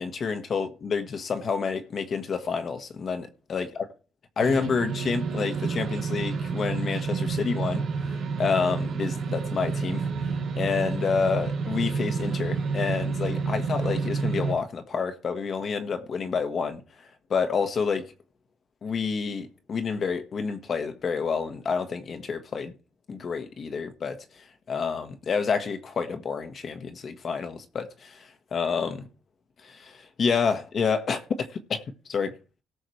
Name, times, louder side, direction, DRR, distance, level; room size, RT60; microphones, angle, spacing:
voice 1, 0.0-3.8 4.4-10.1 10.6-16.8 17.3-18.1 18.8-22.7 23.1-29.1 29.6-31.8 32.1-32.4, left 5 dB, 50° left, 1.5 m, -29 dB
sound 1, 4.4-14.5, right 5 dB, 65° right, 1.9 m, -29 dB
18.5 x 6.4 x 3.2 m
cardioid pair, 90°, 0 cm